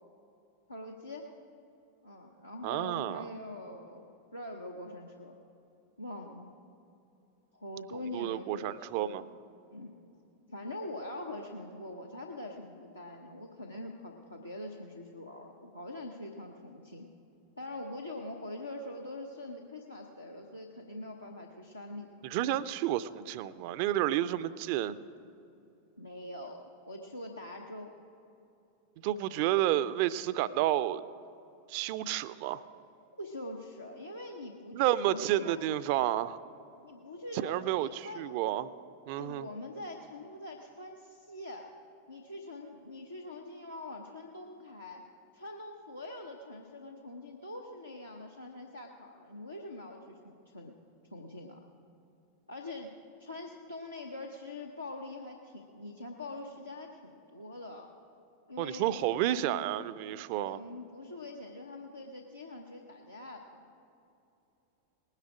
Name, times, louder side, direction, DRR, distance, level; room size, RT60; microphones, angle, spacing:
voice 1, 0.7-1.3 2.0-5.3 6.0-6.5 7.5-9.3 9.7-10.0 10.5-17.1 17.6-22.3 26.0-27.9 33.2-35.6 36.8-38.2 39.2-41.7 42.1-45.0 45.3-50.7 51.1-51.6 52.5-52.9 53.2-57.9 58.5-59.2 60.4-63.7, left 1 dB, 85° left, 0 dB, 0.8 m, -44 dB
voice 2, 2.6-3.3 7.9-9.2 22.2-25.0 29.0-31.0 31.7-32.6 34.7-36.4 37.3-38.7 39.1-39.5 58.6-60.6, right 13 dB, 45° right, 16 dB, 0.4 m, -30 dB
19.5 x 9.8 x 4.9 m, 2.8 s
figure-of-eight pair, 90°, 0 cm